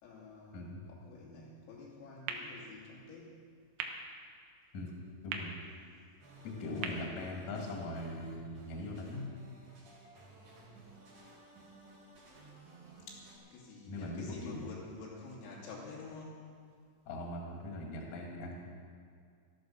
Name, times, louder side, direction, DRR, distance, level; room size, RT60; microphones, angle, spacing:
voice 1, 0.0-3.4 6.4-7.4 13.1-13.2 13.5-16.4, left 3 dB, 90° left, -4 dB, 5.7 m, -49 dB
sound 1, 2.3-8.2, right 5 dB, 85° right, 3.7 m, -46 dB
voice 2, 5.2-5.5 6.4-9.3 13.9-14.6 17.1-18.6, left 1 dB, 45° left, -1 dB, 3.2 m, -40 dB
sound 2, 6.2-13.4, right 2 dB, 40° right, 4.5 m, -56 dB
13.5 x 13.5 x 6.4 m, 2.2 s
omnidirectional pair, 5.9 m